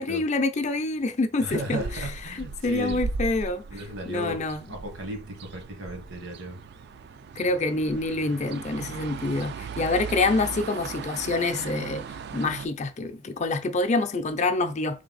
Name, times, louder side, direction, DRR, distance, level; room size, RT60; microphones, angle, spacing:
voice 1, 0.0-3.6 4.0-4.7 7.4-12.0 12.3-15.0, left 3 dB, 35° left, 0.5 m, -27 dB
sound 1, 1.4-12.7, right 4 dB, 60° right, 0.3 m, -37 dB
voice 2, 1.4-3.1 3.7-4.4 4.7-6.6, right 1 dB, 75° right, 1.4 m, -35 dB
3.9 x 3.4 x 4.0 m
head